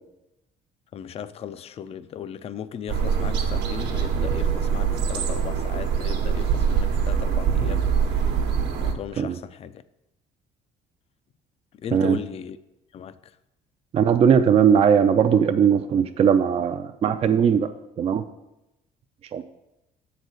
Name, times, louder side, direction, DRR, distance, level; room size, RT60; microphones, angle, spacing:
voice 1, 0.9-8.4 8.8-9.8 11.7-12.6 12.9-13.2, left 8 dB, 35° left, 0.4 m, -37 dB
sound 1, 2.9-8.9, right 7 dB, 80° right, 1.1 m, -23 dB
voice 2, 13.9-17.7 18.0-18.2 19.3-19.4, right 7 dB, 35° right, 0.4 m, -19 dB
7.1 x 4.0 x 6.4 m
cardioid pair, 110°, 17 cm